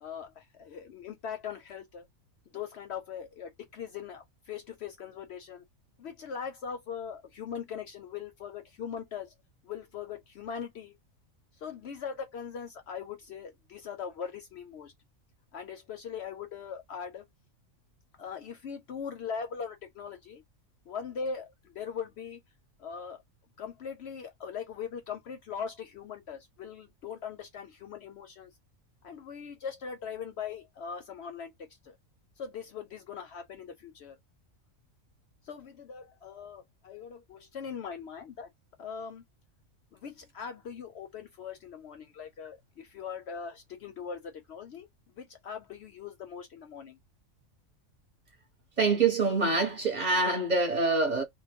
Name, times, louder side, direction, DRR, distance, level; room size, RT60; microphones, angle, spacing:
voice 1, 0.0-2.1 2.5-5.6 6.0-9.3 9.6-10.9 11.6-14.9 15.5-17.2 18.2-20.4 20.9-22.4 22.8-23.2 23.6-28.5 29.0-32.0 32.4-34.2 35.4-38.5 38.8-39.2 39.9-44.9 45.2-47.0, left 6 dB, 65° left, 0.8 m, -40 dB
voice 2, 48.8-51.2, right 3 dB, 35° right, 0.9 m, -25 dB
3.0 x 2.2 x 3.5 m
omnidirectional pair, 1.4 m